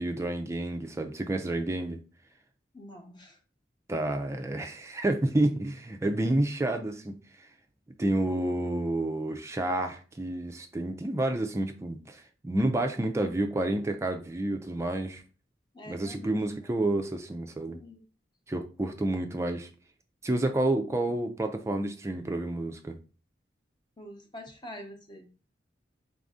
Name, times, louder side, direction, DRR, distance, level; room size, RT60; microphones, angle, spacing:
voice 1, 0.0-2.0 3.9-7.5 8.0-15.2 15.9-17.8 18.5-19.7 20.2-23.0, right 1 dB, 15° right, 0.3 m, -29 dB
voice 2, 2.7-3.4 15.7-16.8 17.7-18.0 24.0-25.3, left 1 dB, 25° left, 0.6 m, -46 dB
4.0 x 2.6 x 3.5 m
head